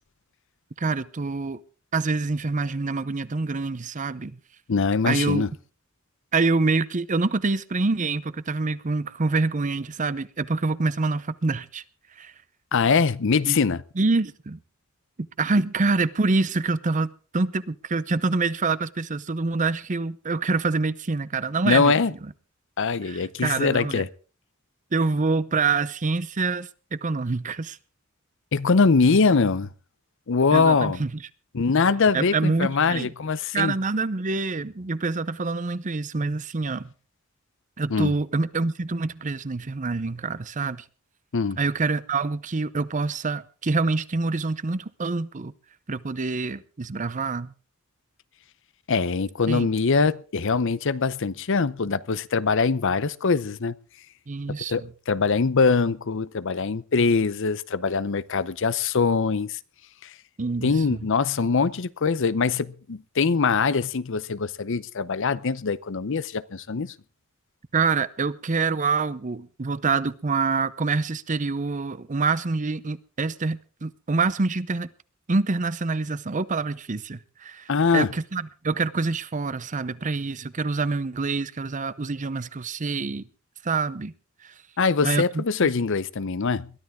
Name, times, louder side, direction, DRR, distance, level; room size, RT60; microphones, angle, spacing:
voice 1, 0.8-1.6 1.9-4.4 5.1-5.5 6.3-11.8 12.2-12.3 13.5-13.6 14.0-14.6 15.2-21.9 23.1-24.0 24.9-27.8 30.5-31.1 32.1-33.1 33.5-36.9 37.8-40.8 41.6-45.5 45.9-47.5 49.5-49.7 54.3-54.9 60.4-61.0 67.7-74.9 75.3-83.3 83.6-84.1 84.4-84.5 85.0-85.7, right 3 dB, 35° right, 0.7 m, -26 dB
voice 2, 4.7-5.5 12.7-13.8 21.6-22.1 22.8-24.1 28.5-29.7 30.3-31.0 31.5-33.7 37.9-38.1 41.3-41.6 48.9-53.8 54.7-59.6 60.0-60.1 60.6-66.9 77.7-78.1 84.8-86.7, left 4 dB, 65° left, 0.7 m, -23 dB
22.0 x 13.0 x 3.6 m
head